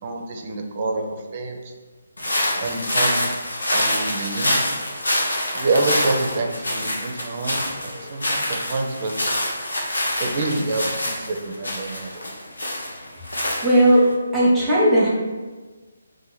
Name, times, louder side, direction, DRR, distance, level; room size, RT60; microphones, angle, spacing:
voice 1, 0.0-1.7 2.6-3.3 3.7-4.6 5.5-9.1 10.2-12.2, right 2 dB, 35° right, 3 dB, 0.5 m, -27 dB
sound 1, 2.2-14.1, left 1 dB, 70° left, 0.8 m, -26 dB
voice 2, 13.6-14.1 14.3-15.1, right 1 dB, 10° right, -7 dB, 0.8 m, -16 dB
2.8 x 2.5 x 3.9 m, 1.3 s
figure-of-eight pair, 145°, 0 cm